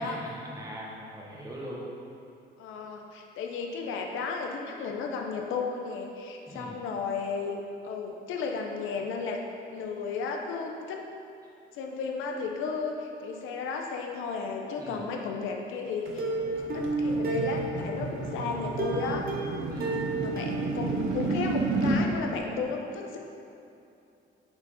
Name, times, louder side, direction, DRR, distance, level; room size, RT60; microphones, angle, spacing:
voice 1, 0.0-1.9 6.5-6.8 14.8-15.0 19.6-20.0, right 1 dB, 15° right, -3 dB, 1.2 m, -40 dB
voice 2, 2.6-9.4 9.7-11.0 11.7-19.3 20.2-23.2, left 4 dB, 90° left, 2 dB, 0.6 m, -34 dB
sound 1, 16.0-22.0, right 3 dB, 85° right, 0.8 m, -31 dB
Plucked string instrument, 16.2-18.2 18.8-21.6 21.9-22.0 22.3-22.4, right 2 dB, 50° right, 1.0 m, -32 dB
5.7 x 4.4 x 4.0 m, 2.7 s
cardioid pair, 90°, 20 cm